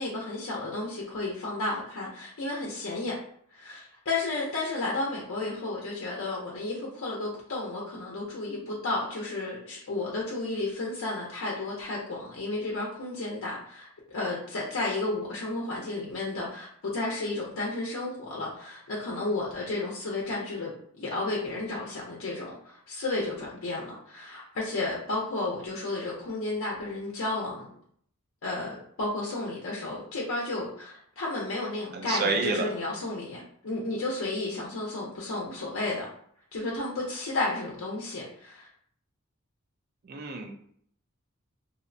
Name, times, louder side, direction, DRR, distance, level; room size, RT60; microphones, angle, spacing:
voice 1, 0.0-3.2 3.5-27.7 28.4-36.1 36.5-38.7, left 2 dB, 70° left, -4 dB, 0.5 m, -32 dB
voice 2, 31.9-32.7 40.0-40.5, right 4 dB, 45° right, 3 dB, 0.4 m, -29 dB
2.7 x 2.0 x 2.5 m, 0.64 s
head